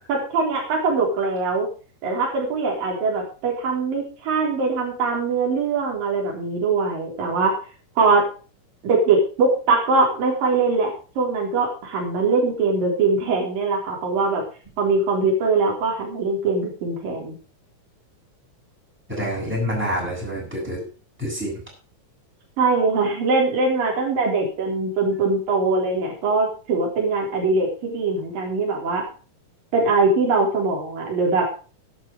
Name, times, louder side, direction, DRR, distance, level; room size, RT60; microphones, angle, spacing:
voice 1, 0.1-1.7 2.0-7.6 8.0-8.2 8.8-14.4 14.8-17.4 22.6-29.0 29.7-31.5, right 3 dB, 90° right, 0 dB, 5.6 m, -22 dB
voice 2, 19.1-20.8 21.2-21.6, equal, 5° right, -3 dB, 7.8 m, -27 dB
12.0 x 11.0 x 4.9 m, 0.37 s
omnidirectional pair, 3.8 m